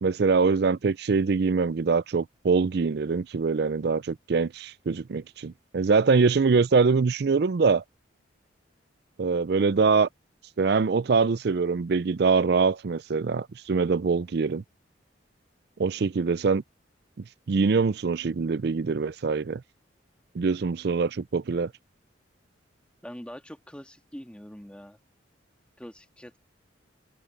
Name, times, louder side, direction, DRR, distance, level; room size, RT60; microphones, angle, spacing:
voice 1, 0.0-7.8 9.2-10.1 10.6-14.6 15.8-16.6 17.5-19.6 20.3-21.7, right 4 dB, 55° right, 0.4 m, -24 dB
voice 2, 23.0-25.0 25.8-26.4, equal, 5° left, 1.7 m, -43 dB
open air
head